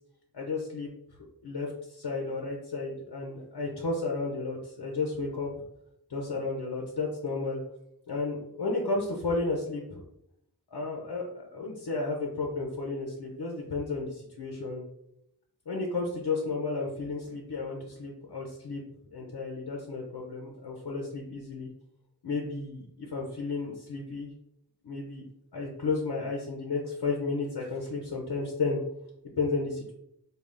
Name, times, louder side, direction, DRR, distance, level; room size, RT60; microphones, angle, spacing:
voice 1, 0.3-0.9 1.4-5.5 6.1-7.6 8.1-10.0 10.7-14.8 15.7-18.8 19.1-21.7 22.2-24.3 24.8-25.3 25.5-28.8 29.4-29.9, left 3 dB, 85° left, -1 dB, 0.7 m, -33 dB
3.7 x 2.3 x 3.4 m, 0.76 s
wide cardioid pair, 45°, 39 cm